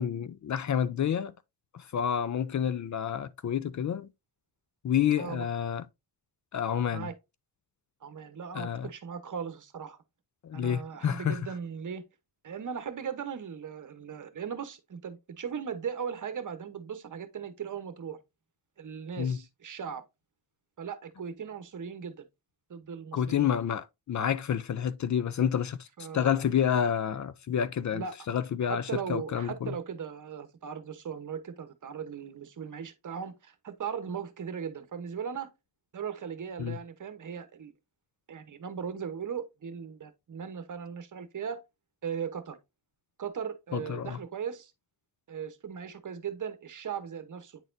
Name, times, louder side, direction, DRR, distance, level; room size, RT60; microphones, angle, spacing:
voice 1, 0.0-1.3 1.7-4.1 4.8-5.9 6.5-7.1 8.5-8.9 10.4-11.5 19.2-19.4 23.1-29.7 36.6-36.8 43.7-44.2, left 8 dB, 45° left, 0.5 m, -29 dB
voice 2, 8.0-10.0 10.5-12.0 12.4-18.2 18.8-20.0 20.8-22.3 22.7-23.5 26.0-26.4 27.9-28.2 28.7-35.5 35.9-37.7 38.3-41.6 42.0-42.6 43.2-44.7 45.3-47.6, right 7 dB, 50° right, 1.0 m, -38 dB
8.9 x 4.1 x 2.6 m
cardioid pair, 105°, 41 cm